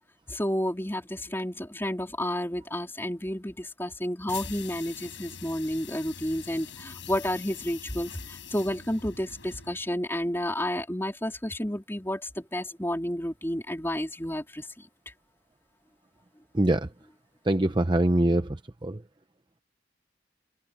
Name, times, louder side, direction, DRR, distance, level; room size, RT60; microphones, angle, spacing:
voice 1, 0.3-14.6, left 1 dB, 10° left, 3.8 m, -31 dB
sound 1, 4.3-9.9, left 7 dB, 75° left, 6.5 m, -44 dB
voice 2, 16.5-16.9 17.4-19.0, right 1 dB, 25° right, 0.8 m, -24 dB
open air
head